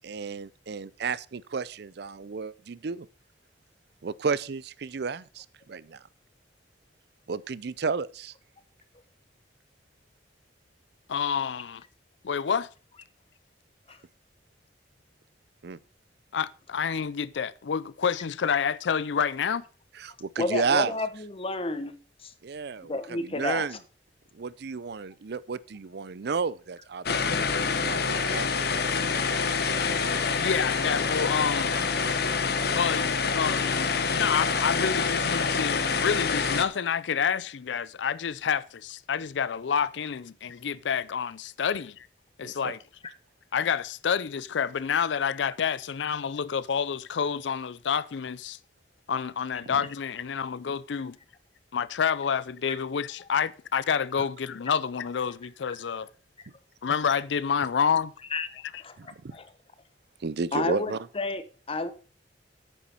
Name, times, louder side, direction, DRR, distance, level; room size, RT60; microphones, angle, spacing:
voice 1, 0.0-3.1 4.0-6.0 7.3-8.3 15.6-15.8 20.0-20.9 22.4-23.8 24.3-27.4 27.8-28.8 29.1-29.8 42.4-42.7 49.7-49.8 59.0-59.4 60.2-61.0, right 5 dB, 65° right, 0.5 m, -32 dB
voice 2, 11.1-11.8 12.2-12.7 16.3-19.6 30.4-31.8 32.8-42.1 42.4-42.8 43.5-48.6 49.1-51.2 51.7-56.1 56.8-58.1, left 7 dB, 80° left, 0.5 m, -28 dB
voice 3, 20.4-21.9 22.2-22.3 22.9-23.8 58.3-58.5 58.8-58.9 59.3-59.5 60.5-61.9, left 3 dB, 30° left, 1.0 m, -31 dB
sound 1, 27.1-36.7, left 5 dB, 60° left, 1.0 m, -26 dB
9.2 x 7.2 x 5.5 m
head